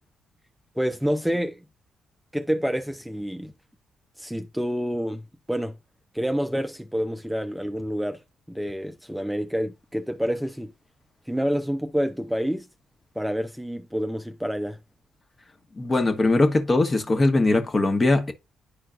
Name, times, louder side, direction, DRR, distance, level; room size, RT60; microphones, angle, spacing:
voice 1, 0.8-1.6 2.3-3.5 4.2-5.8 6.1-8.2 8.5-10.7 11.3-12.7 13.2-14.8, equal, ahead, 0.7 m, -28 dB
voice 2, 15.8-18.3, left 2 dB, 35° left, 1.3 m, -21 dB
10.0 x 4.4 x 2.5 m
hypercardioid pair, 50°, 0 cm